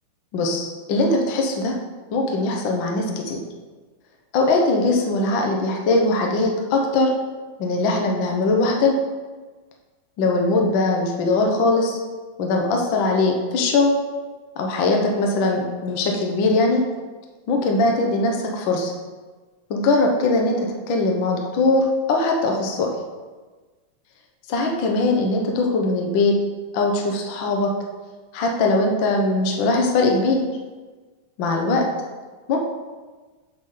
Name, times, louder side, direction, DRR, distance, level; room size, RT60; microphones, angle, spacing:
voice 1, 0.3-1.8 2.1-3.4 4.3-7.1 7.6-9.0 10.2-12.0 12.4-13.9 14.6-16.8 17.5-18.9 19.7-22.9 24.5-26.3 26.7-27.7 28.3-30.4 31.4-31.9 32.5-32.6, left 2 dB, 70° left, 1 dB, 1.1 m, -21 dB
7.8 x 5.9 x 3.8 m, 1.3 s
omnidirectional pair, 3.4 m